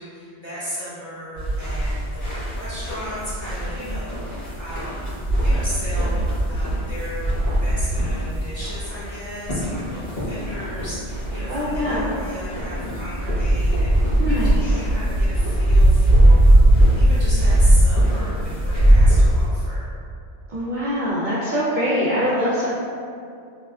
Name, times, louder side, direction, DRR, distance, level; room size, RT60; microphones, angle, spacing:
voice 1, 0.0-5.1 5.4-7.3 7.6-19.9, equal, 25° left, -11 dB, 0.8 m, -35 dB
sound 1, 1.3-19.5, right 1 dB, 50° left, 1.6 m, -19 dB
voice 2, 11.5-12.1 14.2-14.8 20.5-22.7, equal, 60° right, -8 dB, 0.5 m, -23 dB
3.3 x 2.8 x 2.3 m, 2.4 s
omnidirectional pair, 1.2 m